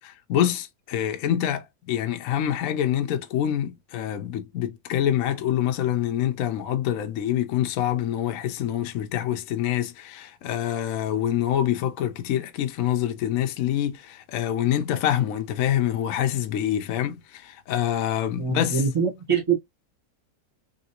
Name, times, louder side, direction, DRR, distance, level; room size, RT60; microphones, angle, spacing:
voice 1, 0.0-18.8, left 11 dB, 70° left, 0.9 m, -26 dB
voice 2, 18.4-19.6, right 6 dB, 25° right, 0.8 m, -24 dB
3.2 x 2.6 x 2.8 m
omnidirectional pair, 1.8 m